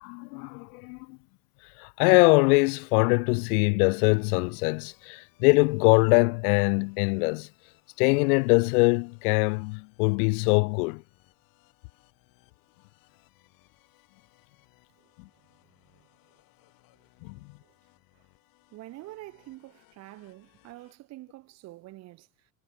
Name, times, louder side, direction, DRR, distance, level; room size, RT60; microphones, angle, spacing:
voice 1, 0.0-1.2 1.8-7.5 8.0-11.0 15.2-15.3 17.2-17.4, left 30 dB, 80° left, 0.6 m, -23 dB
sound 1, 3.9-21.0, left 20 dB, 50° left, 4.8 m, -65 dB
voice 2, 15.6-16.1 16.9-17.7 18.1-18.3 18.7-22.5, right 18 dB, 35° right, 0.9 m, -47 dB
cardioid pair, 165°, 44 cm